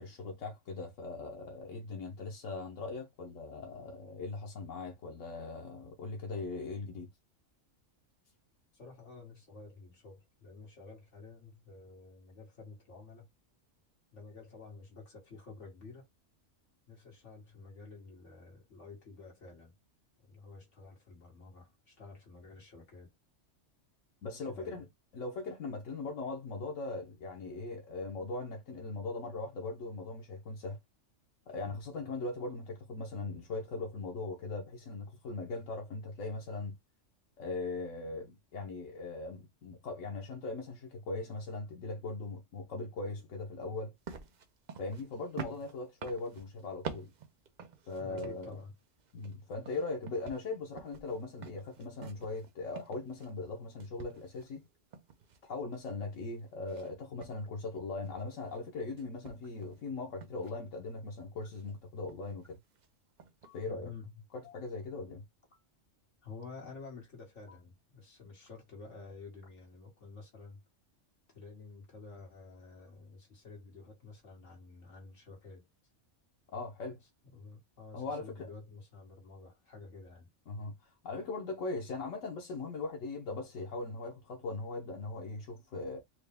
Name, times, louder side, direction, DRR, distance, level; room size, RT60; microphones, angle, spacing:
voice 1, 0.0-7.1 24.2-24.8 25.1-30.8 31.5-36.8 37.4-43.9 44.8-47.1 47.9-48.6 49.1-54.6 55.4-62.6 63.5-63.9 64.3-65.2 76.5-77.0 77.9-78.5 80.5-86.0, left 3 dB, 90° left, 1.2 m, -40 dB
voice 2, 8.7-13.3 14.1-16.1 16.9-19.7 20.2-23.1 24.4-24.8 45.4-45.6 48.0-48.7 63.6-64.1 66.2-70.6 71.3-75.7 77.3-80.3, left 4 dB, 75° left, 2.0 m, -50 dB
sound 1, 44.1-48.6 49.0-53.5 53.8-56.2 56.7-56.9 57.2-58.6 59.0-59.8 60.2-60.4 61.5-61.7 62.1-62.5 62.8-62.9 63.2-63.5, right 6 dB, 50° right, 0.6 m, -48 dB
sound 2, 52.4-52.5 53.4-53.5 54.4-54.5 55.4-55.5 56.4-56.5 57.4-57.5 58.4-58.5 59.4-59.5 60.4-60.5 61.4-61.5 62.4-62.5 63.4-63.6 64.4-64.7 65.4-65.7 66.4-66.7 67.4-67.6 68.4-68.6 69.4-69.6, left 5 dB, 30° left, 1.1 m, -62 dB
4.5 x 2.2 x 3.3 m
omnidirectional pair, 1.3 m